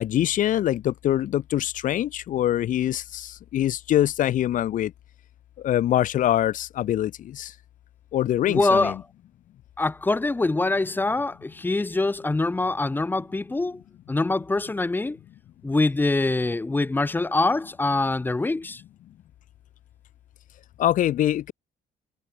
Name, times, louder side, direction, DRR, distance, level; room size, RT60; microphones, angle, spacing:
voice 1, 0.0-4.9 5.6-7.5 8.1-9.0 20.8-21.5, left 12 dB, 50° left, 0.5 m, -24 dB
voice 2, 8.4-9.0 9.8-13.8 14.1-15.2 15.6-18.8, left 2 dB, 10° left, 0.8 m, -24 dB
cardioid pair, 110°, 17 cm